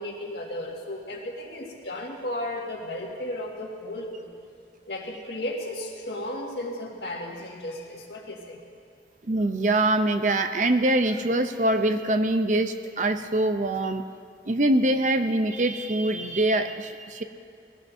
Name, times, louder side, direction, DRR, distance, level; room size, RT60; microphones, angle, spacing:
voice 1, 0.0-4.3 4.9-8.6, left 1 dB, 70° left, -1 dB, 1.9 m, -34 dB
voice 2, 9.2-14.0 14.5-17.2, right 1 dB, 45° right, 8 dB, 0.6 m, -24 dB
20.0 x 17.0 x 2.7 m, 2.5 s
head